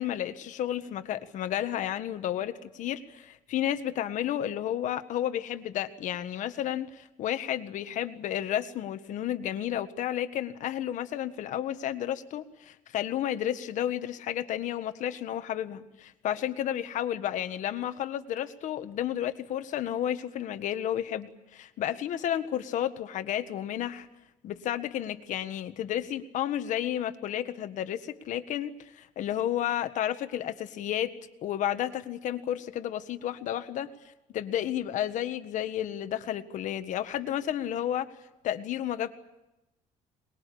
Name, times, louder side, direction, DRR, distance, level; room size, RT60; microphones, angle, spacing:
voice 1, 0.0-24.1 24.4-31.1 31.4-33.9 34.3-38.1 38.4-39.1, left 11 dB, 60° left, 10 dB, 1.6 m, -32 dB
23.0 x 21.5 x 8.6 m, 0.96 s
cardioid pair, 160°, 14 cm